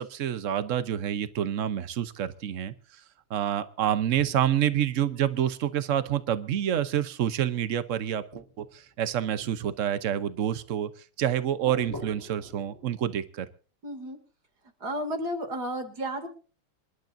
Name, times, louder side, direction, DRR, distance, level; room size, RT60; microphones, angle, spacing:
voice 1, 0.0-3.0 3.3-10.9 11.2-13.5, right 10 dB, 85° right, 12 dB, 0.6 m, -28 dB
sound 1, 4.2-6.3 7.3-7.8 8.3-10.9 11.6-12.8, left 1 dB, 10° left, 6.5 m, -47 dB
voice 2, 13.8-14.2 14.8-16.3, equal, 45° right, 7 dB, 3.0 m, -32 dB
27.0 x 12.0 x 2.6 m, 0.37 s
omnidirectional pair, 2.4 m